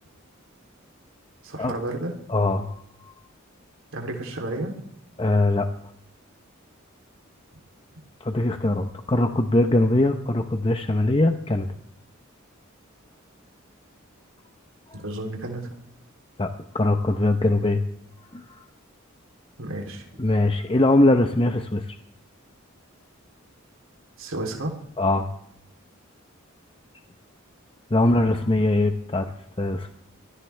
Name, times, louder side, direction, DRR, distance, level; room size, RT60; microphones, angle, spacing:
voice 1, 1.4-2.1 3.9-4.7 14.9-15.7 19.6-20.0 24.2-24.7, right 1 dB, 70° right, 1 dB, 3.3 m, -31 dB
voice 2, 2.3-2.7 3.0-3.1 5.2-5.7 8.2-11.7 14.9-15.0 16.4-17.8 18.3-18.5 20.2-22.0 25.0-25.3 27.9-29.3 29.6-29.9, left 2 dB, 25° left, 6 dB, 0.9 m, -21 dB
24.5 x 17.0 x 3.4 m, 0.73 s
head